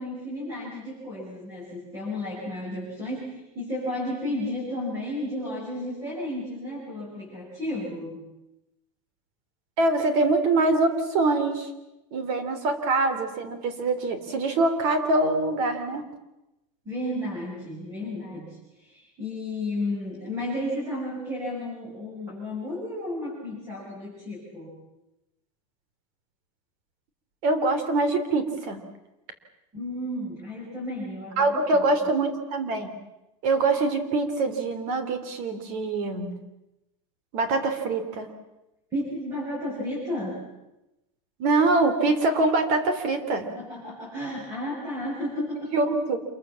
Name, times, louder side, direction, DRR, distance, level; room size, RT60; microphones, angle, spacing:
voice 1, 0.0-8.2 16.9-24.7 29.7-31.8 38.9-40.4 43.5-45.8, left 1 dB, 20° right, -4 dB, 7.5 m, -33 dB
voice 2, 9.8-11.7 12.1-16.0 27.4-28.8 31.4-32.9 33.4-36.3 37.3-38.3 41.4-43.5 45.4-45.5 45.7-46.2, right 2 dB, 50° right, 9 dB, 3.7 m, -24 dB
27.5 x 23.5 x 7.3 m, 0.95 s
supercardioid pair, 165°, 18 cm